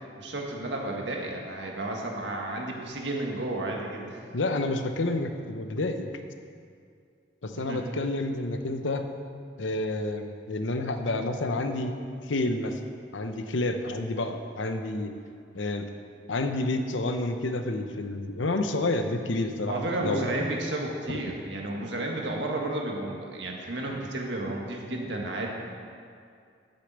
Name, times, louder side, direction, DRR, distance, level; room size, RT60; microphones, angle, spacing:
voice 1, 0.2-4.2 7.5-7.8 19.7-25.5, right 2 dB, 70° right, 0 dB, 1.6 m, -32 dB
voice 2, 4.3-6.1 7.4-9.1 9.6-11.9 12.2-12.8 13.1-15.1 15.5-15.9 16.3-20.4 21.1-21.2, left 2 dB, 90° left, 7 dB, 0.8 m, -29 dB
8.3 x 6.8 x 8.2 m, 2.3 s
head